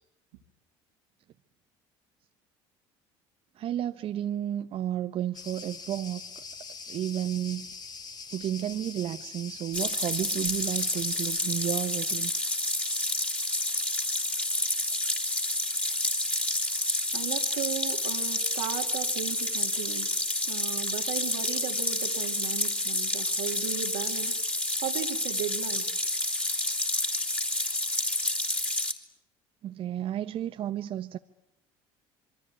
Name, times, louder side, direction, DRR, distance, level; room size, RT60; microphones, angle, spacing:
voice 1, 3.6-6.2 6.9-7.7 8.3-12.3 29.6-31.2, right 11 dB, 55° right, 8 dB, 1.1 m, -32 dB
Cricket, 5.3-11.4, left 4 dB, 35° left, 2.9 m, -43 dB
sound 1, 9.7-28.9, left 1 dB, 10° left, 3.6 m, -29 dB
voice 2, 17.1-20.1 20.4-24.3 24.8-25.9, right 11 dB, 85° right, 5 dB, 2.8 m, -36 dB
27.0 x 22.5 x 9.6 m, 0.82 s
supercardioid pair, 85°, 12 cm